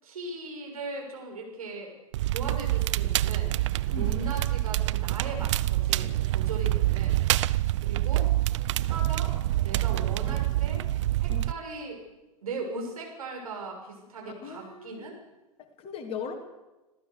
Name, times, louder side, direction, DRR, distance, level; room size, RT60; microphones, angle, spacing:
voice 1, 0.0-2.0 2.3-3.6 3.9-7.2 7.8-8.3 8.8-9.3 9.6-10.9 11.2-12.0 12.4-15.2, right 3 dB, 70° right, 1 dB, 6.7 m, -38 dB
Crackle, 2.1-11.5, right 16 dB, 55° right, 0.6 m, -26 dB
voice 2, 14.2-15.1 15.6-16.3, left 6 dB, 30° left, 5 dB, 3.2 m, -39 dB
26.5 x 15.5 x 6.7 m, 1.1 s
figure-of-eight pair, 95°, 19 cm